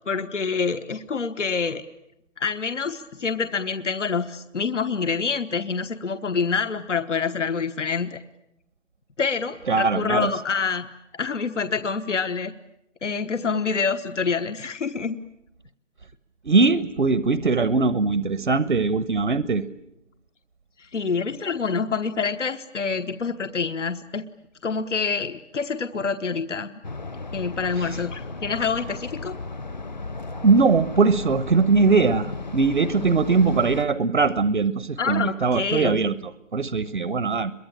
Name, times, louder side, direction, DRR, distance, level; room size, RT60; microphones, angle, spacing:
voice 1, 0.1-1.8 2.4-8.2 9.2-10.9 11.1-12.5 13.0-15.2 20.8-24.2 24.6-26.7 27.3-29.3 35.0-36.0, left 5 dB, 75° left, 10 dB, 1.2 m, -26 dB
voice 2, 9.7-10.3 16.4-19.6 27.7-28.0 30.4-37.5, right 4 dB, 60° right, 15 dB, 1.0 m, -21 dB
sound 1, 26.8-33.8, left 3 dB, 35° left, 0.9 m, -35 dB
27.0 x 23.0 x 8.8 m, 0.85 s
figure-of-eight pair, 175°, 37 cm